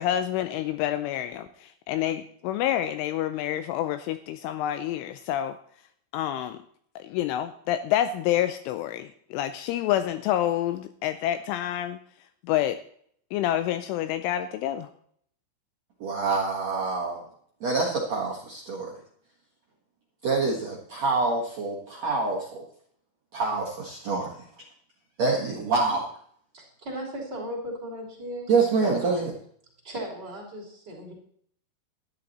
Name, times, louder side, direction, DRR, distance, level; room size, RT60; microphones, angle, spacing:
voice 1, 0.0-5.6 6.1-6.6 7.0-12.0 12.4-12.8 13.3-14.9, left 12 dB, 85° left, 11 dB, 2.9 m, -28 dB
voice 2, 16.0-17.2 17.6-19.0 20.2-22.6 23.3-24.4 25.2-26.1 28.5-29.3, right 4 dB, 90° right, -3 dB, 1.4 m, -26 dB
voice 3, 26.5-28.5 29.8-31.1, equal, 25° right, -4 dB, 2.8 m, -36 dB
13.0 x 11.0 x 4.2 m, 0.62 s
omnidirectional pair, 6.0 m